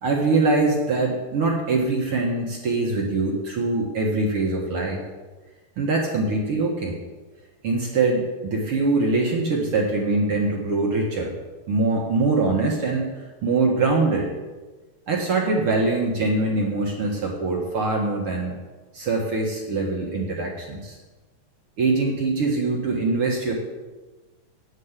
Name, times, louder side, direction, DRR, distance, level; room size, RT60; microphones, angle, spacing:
voice 1, 0.0-5.0 5.8-7.0 7.6-11.3 11.7-14.3 15.1-18.6 18.9-21.0 21.8-23.5, right 3 dB, 50° right, -1 dB, 1.9 m, -23 dB
9.1 x 7.4 x 8.2 m, 1.3 s
omnidirectional pair, 3.9 m